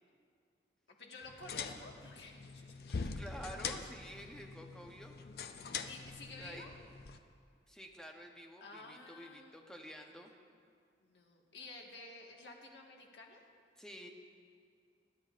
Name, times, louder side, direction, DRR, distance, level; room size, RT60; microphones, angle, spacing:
voice 1, 0.9-2.8 5.8-6.7 8.6-9.5 11.0-13.4, left 3 dB, 85° left, 0 dB, 1.6 m, -52 dB
sound 1, 1.2-7.2, left 5 dB, 60° left, 0.5 m, -44 dB
voice 2, 3.0-5.2 6.4-6.7 7.7-10.3 13.8-14.1, equal, 5° left, 2 dB, 0.8 m, -50 dB
21.5 x 10.0 x 2.5 m, 2.3 s
head